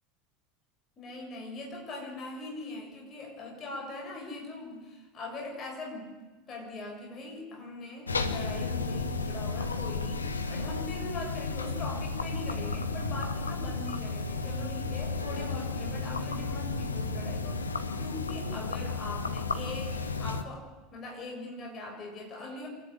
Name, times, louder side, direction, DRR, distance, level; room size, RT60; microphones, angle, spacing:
voice 1, 1.0-6.2 6.5-22.7, left 2 dB, 35° left, 0 dB, 7.1 m, -41 dB
sound 1, 8.1-20.4, left 4 dB, 80° left, 1.1 m, -33 dB
sound 2, 13.6-20.3, right 9 dB, 60° right, 1.3 m, -49 dB
27.0 x 11.0 x 9.0 m, 1.2 s
figure-of-eight pair, 75°, 0 cm